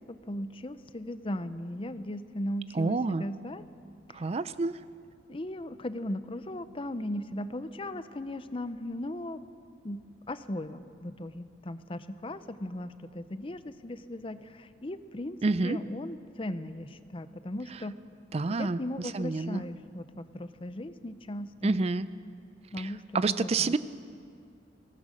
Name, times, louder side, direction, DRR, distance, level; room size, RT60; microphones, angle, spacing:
voice 1, 0.0-3.7 4.2-4.4 5.3-9.4 9.8-18.0 18.5-21.7 22.7-23.0 23.3-23.7, left 1 dB, 30° left, 12 dB, 0.7 m, -37 dB
voice 2, 2.7-3.2 4.1-4.8 15.4-15.8 17.7-17.8 18.3-19.6 21.6-22.1 22.8-23.8, right 3 dB, 35° right, 14 dB, 0.4 m, -29 dB
22.5 x 18.5 x 6.4 m, 2.3 s
head